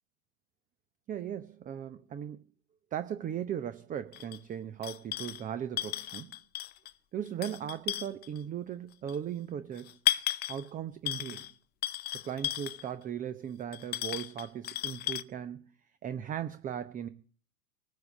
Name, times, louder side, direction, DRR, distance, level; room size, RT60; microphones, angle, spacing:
voice 1, 1.1-2.4 2.9-6.3 7.1-10.0 10.5-11.5 12.1-15.7 16.0-17.1, right 9 dB, 20° right, 0.8 m, -38 dB
sound 1, 4.1-4.4 4.8-5.4 5.8-6.9 7.3-8.4 9.1-9.2 9.8-10.7 11.1-11.5 11.8-12.9 13.7-15.2, left 13 dB, 20° left, 0.6 m, -34 dB
19.0 x 8.4 x 8.4 m
hypercardioid pair, 105°, 44 cm